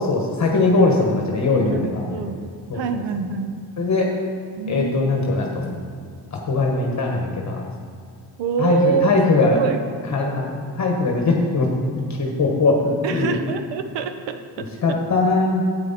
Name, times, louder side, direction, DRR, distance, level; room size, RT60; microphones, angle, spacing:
voice 1, 0.0-2.1 2.7-2.8 3.8-4.1 4.7-5.8 6.3-7.7 8.6-9.6 10.1-13.4 14.8-15.7, left 3 dB, 40° left, 0 dB, 1.3 m, -20 dB
voice 2, 1.5-2.4 2.7-3.6 4.6-5.1 8.4-9.1 9.4-9.8 13.0-15.0, right 6 dB, 75° right, 9 dB, 0.9 m, -25 dB
9.4 x 8.6 x 4.2 m, 2.2 s
cardioid pair, 100°, 44 cm